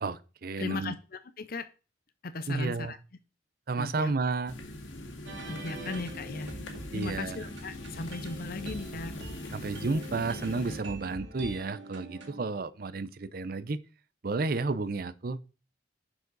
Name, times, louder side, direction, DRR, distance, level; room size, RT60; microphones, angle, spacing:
voice 1, 0.0-0.9 2.5-3.0 3.7-4.5 5.7-6.0 6.9-7.5 9.5-13.8 14.2-15.4, right 3 dB, 50° right, 0.6 m, -32 dB
voice 2, 0.6-1.7 2.2-3.0 3.8-4.1 5.5-6.5 6.9-9.1, left 3 dB, 50° left, 0.6 m, -37 dB
sound 1, 4.5-10.8, left 1 dB, 85° left, 2.0 m, -41 dB
sound 2, 5.3-12.4, right 1 dB, 75° right, 2.0 m, -45 dB
11.0 x 4.9 x 4.0 m
head